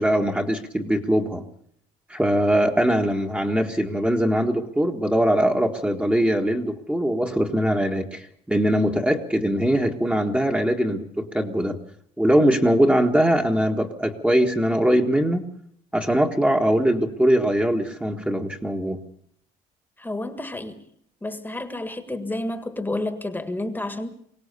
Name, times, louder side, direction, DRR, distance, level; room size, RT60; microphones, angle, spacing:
voice 1, 0.0-1.4 2.1-11.8 12.2-15.5 15.9-19.0, equal, 10° right, 2 dB, 1.7 m, -21 dB
voice 2, 20.0-20.8 21.2-24.1, left 1 dB, 10° left, 8 dB, 1.8 m, -30 dB
23.5 x 17.5 x 6.9 m, 0.67 s
cardioid pair, 110°, 17 cm